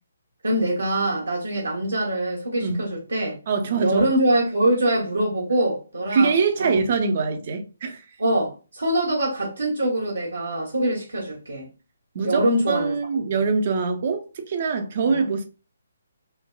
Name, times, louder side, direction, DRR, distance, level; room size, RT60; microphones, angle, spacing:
voice 1, 0.4-3.3 3.8-6.3 6.6-6.7 8.2-11.7 12.2-13.3 15.0-15.2, right 1 dB, 75° right, 0.9 m, -24 dB
voice 2, 3.5-4.1 6.1-8.1 12.1-15.4, right 4 dB, 40° right, 0.5 m, -23 dB
3.2 x 2.1 x 2.2 m
figure-of-eight pair, 140°, 0 cm